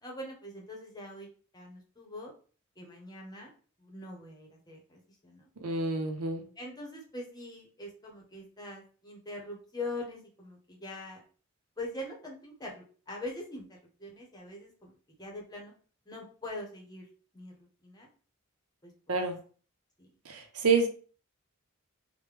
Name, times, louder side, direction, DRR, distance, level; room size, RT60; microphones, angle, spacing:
voice 1, 0.0-2.3 2.8-3.5 3.8-5.4 6.6-11.2 11.8-14.9 15.2-15.7 16.1-17.1 17.3-18.1 18.8-19.3 20.0-20.1, left 1 dB, 20° left, -1 dB, 0.8 m, -43 dB
voice 2, 5.6-6.5 19.1-19.4 20.2-20.9, right 4 dB, 90° right, 4 dB, 0.7 m, -28 dB
3.2 x 2.2 x 3.2 m, 0.40 s
head